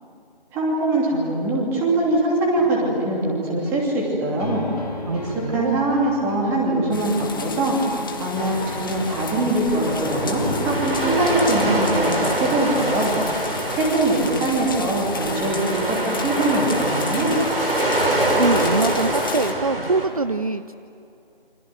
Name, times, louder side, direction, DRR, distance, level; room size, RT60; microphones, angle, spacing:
voice 1, 0.5-4.7 5.1-7.8 8.2-13.2 13.7-17.4, right 2 dB, 5° right, -3 dB, 2.9 m, -22 dB
sound 1, 2.5-12.1, left 3 dB, 40° left, 2.8 m, -35 dB
voice 2, 5.1-5.8 18.4-20.7, right 3 dB, 40° right, 12 dB, 0.6 m, -23 dB
sound 2, 6.9-19.5, left 5 dB, 20° left, 1.4 m, -35 dB
sound 3, 8.4-20.1, right 1 dB, 75° right, 6.4 m, -25 dB
28.5 x 26.0 x 7.9 m, 2.6 s
figure-of-eight pair, 165°, 29 cm